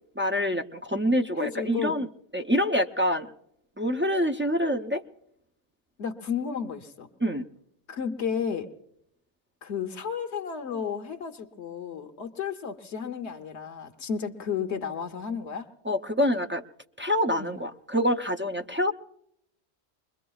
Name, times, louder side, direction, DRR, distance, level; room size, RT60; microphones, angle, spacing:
voice 1, 0.2-2.1 2.3-3.3 3.8-5.0 7.2-7.5 15.8-16.6 17.0-18.9, equal, 15° right, 3 dB, 0.4 m, -26 dB
voice 2, 1.4-2.0 6.0-7.1 7.9-8.7 9.6-15.7 17.4-17.6, left 7 dB, 85° left, 6 dB, 1.2 m, -32 dB
25.0 x 22.0 x 2.3 m, 0.73 s
omnidirectional pair, 1.1 m